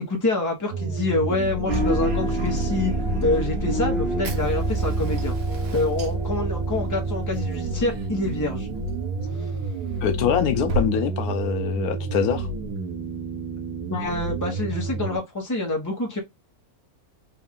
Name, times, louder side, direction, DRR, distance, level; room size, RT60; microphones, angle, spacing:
voice 1, 0.0-5.4 5.7-8.7 9.4-9.5 13.9-16.2, left 2 dB, 15° left, 0.8 m, -27 dB
sound 1, 0.7-15.2, right 3 dB, 85° right, 1.4 m, -30 dB
sound 2, 1.7-10.9, right 1 dB, 45° right, 1.3 m, -29 dB
Fire, 4.2-10.9, right 1 dB, 65° right, 1.3 m, -37 dB
voice 2, 10.0-12.5, left 8 dB, 75° left, 1.0 m, -24 dB
3.5 x 2.4 x 3.5 m
omnidirectional pair, 1.6 m